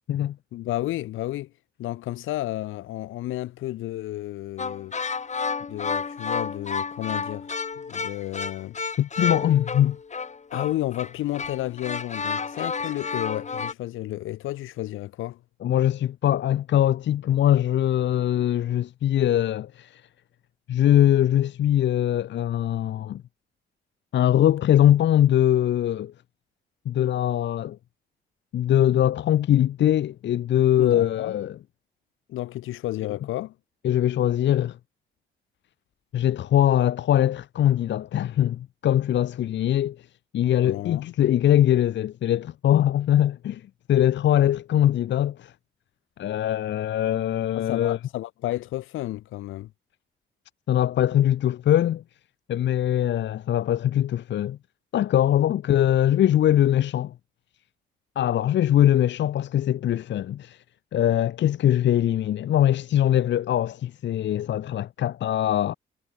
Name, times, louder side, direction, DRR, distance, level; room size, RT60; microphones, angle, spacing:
voice 1, 0.5-1.5 1.8-4.9 5.7-7.5 7.8-8.8 10.5-15.4 30.8-31.3 32.3-33.5 40.6-41.1 47.5-49.7, left 15 dB, 90° left, 3.3 m, -32 dB
sound 1, 4.6-13.7, left 5 dB, 35° left, 6.1 m, -31 dB
voice 2, 9.0-10.0 15.6-20.0 20.7-23.2 24.1-26.1 26.8-27.8 28.5-31.6 33.8-34.8 36.1-40.1 40.3-45.5 46.2-48.0 50.7-52.0 52.5-54.6 54.9-57.1 58.1-60.6 60.9-65.7, left 11 dB, 65° left, 1.2 m, -22 dB
cardioid pair, 90°, 20 cm